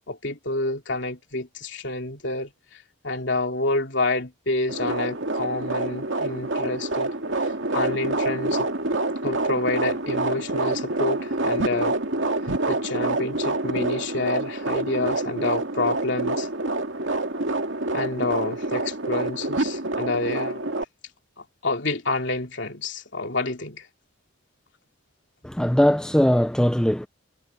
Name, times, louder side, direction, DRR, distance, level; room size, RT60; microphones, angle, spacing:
voice 1, 0.1-7.1 7.4-8.7 9.2-12.0 12.7-16.5 17.9-20.7 21.6-23.9, left 2 dB, 60° left, 3.0 m, -28 dB
sound 1, 4.7-20.8, right 2 dB, 65° right, 2.3 m, -27 dB
voice 2, 25.4-27.1, equal, 5° left, 0.4 m, -20 dB
head